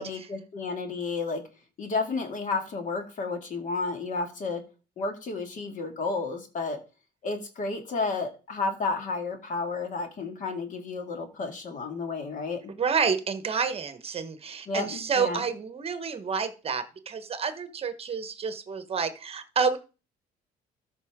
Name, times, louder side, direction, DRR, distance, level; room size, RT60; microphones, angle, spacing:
voice 1, 0.0-1.4 1.8-4.6 5.0-6.8 7.2-12.7 14.7-15.4, left 3 dB, 50° left, 5 dB, 2.1 m, -32 dB
voice 2, 12.8-19.8, right 5 dB, 35° right, 10 dB, 1.2 m, -29 dB
13.5 x 5.6 x 3.6 m, 0.34 s
cardioid pair, 110°, 17 cm